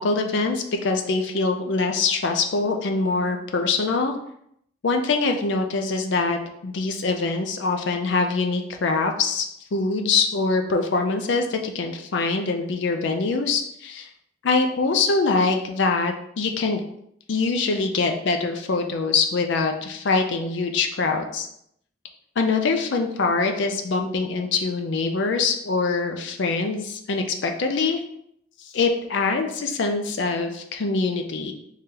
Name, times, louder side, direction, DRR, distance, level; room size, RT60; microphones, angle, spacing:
voice 1, 0.0-4.1 4.8-9.4 9.7-14.1 14.4-16.8 17.3-21.5 22.4-28.0 28.7-31.5, left 4 dB, 60° left, 4 dB, 0.4 m, -24 dB
3.2 x 2.8 x 3.7 m, 0.72 s
head